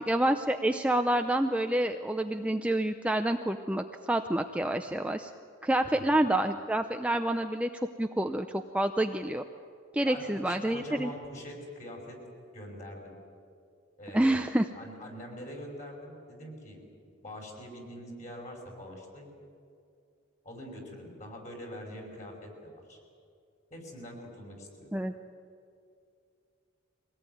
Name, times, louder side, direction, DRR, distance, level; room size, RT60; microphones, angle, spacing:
voice 1, 0.0-5.3 5.6-7.7 8.0-8.5 8.7-9.4 9.9-11.1 14.1-14.7 24.9-25.1, right 1 dB, 5° right, 6 dB, 0.5 m, -28 dB
voice 2, 10.0-12.2 12.5-13.1 14.0-14.4 14.8-19.3 20.4-23.0 23.7-25.0, left 1 dB, 35° left, 1 dB, 5.5 m, -44 dB
23.0 x 18.0 x 9.2 m, 2.4 s
head